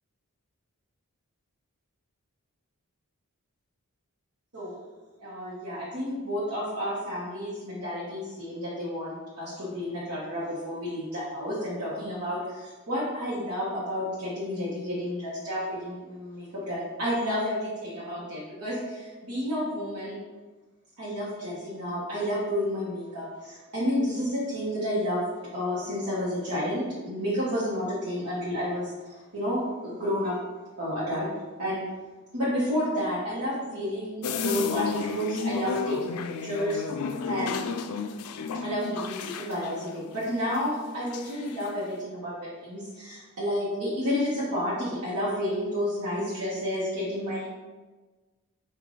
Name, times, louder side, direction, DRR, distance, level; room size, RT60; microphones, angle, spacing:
voice 1, 5.2-20.2 21.0-25.2 25.5-30.4 30.8-31.3 31.6-31.8 32.3-37.6 38.5-47.5, equal, 85° right, -9 dB, 1.2 m, -31 dB
sound 1, 34.2-40.9 41.1-41.6, left 4 dB, 85° left, 0.3 m, -32 dB
4.9 x 2.6 x 3.9 m, 1.3 s
head